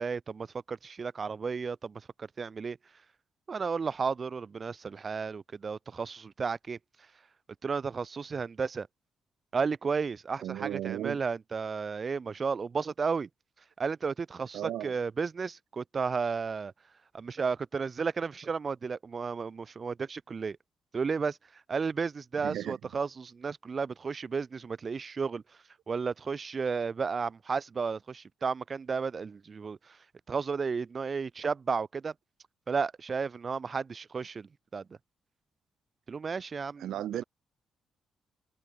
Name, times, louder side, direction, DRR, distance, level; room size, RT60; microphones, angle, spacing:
voice 1, 0.0-2.8 3.5-6.8 7.6-8.9 9.5-13.3 13.8-16.7 17.1-20.6 20.9-21.4 21.7-25.4 25.9-30.0 30.3-32.1 32.7-34.9 36.1-36.9, right 5 dB, 45° right, 3.9 m, -33 dB
voice 2, 10.4-11.2 14.5-14.9 22.4-22.8 36.8-37.2, right 12 dB, 70° right, 1.4 m, -35 dB
hypercardioid pair, 45°, 0 cm